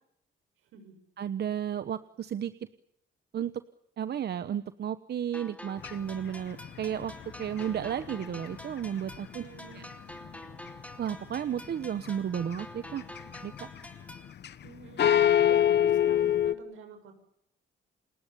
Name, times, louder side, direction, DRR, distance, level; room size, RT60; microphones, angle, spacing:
voice 1, 1.2-2.5 3.3-3.5 4.0-7.1 7.4-9.4 9.7-9.8 11.0-13.1 13.4-13.7, right 9 dB, 55° right, 12 dB, 1.1 m, -33 dB
sound 1, 5.3-14.3, left 1 dB, 5° left, 3.2 m, -47 dB
sound 2, 5.8-9.9 10.2-11.1 11.6-12.1 12.4-14.7 15.0-16.5, left 10 dB, 60° left, 1.4 m, -26 dB
voice 2, 9.3-9.9 14.6-17.1, right 5 dB, 85° right, 7 dB, 6.8 m, -47 dB
30.0 x 20.5 x 7.1 m, 0.74 s
cardioid pair, 90°, 20 cm